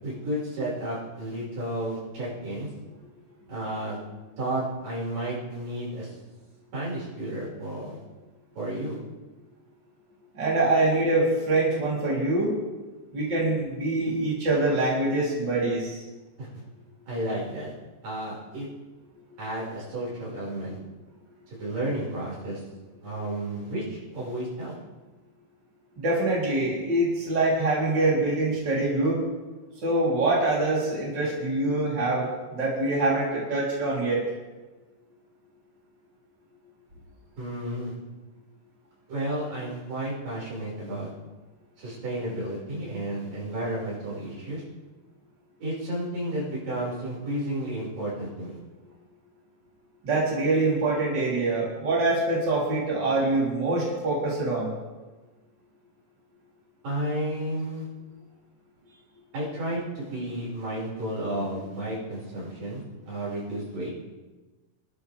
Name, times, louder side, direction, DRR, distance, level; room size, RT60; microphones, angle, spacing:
voice 1, 0.0-2.7 3.5-4.0 4.4-6.1 6.7-8.0 8.6-9.0 16.4-16.5 17.1-17.7 18.0-18.7 19.4-20.8 21.5-22.6 23.0-24.7 37.4-37.9 39.1-41.1 41.8-44.6 45.6-48.6 56.8-57.9 59.3-63.9, right 1 dB, 85° right, -7 dB, 7.8 m, -32 dB
voice 2, 10.3-12.5 13.1-16.0 26.0-29.2 29.8-34.2 50.0-54.7, right 2 dB, 30° right, -6 dB, 4.5 m, -24 dB
27.0 x 12.0 x 3.6 m, 1.2 s
omnidirectional pair, 3.8 m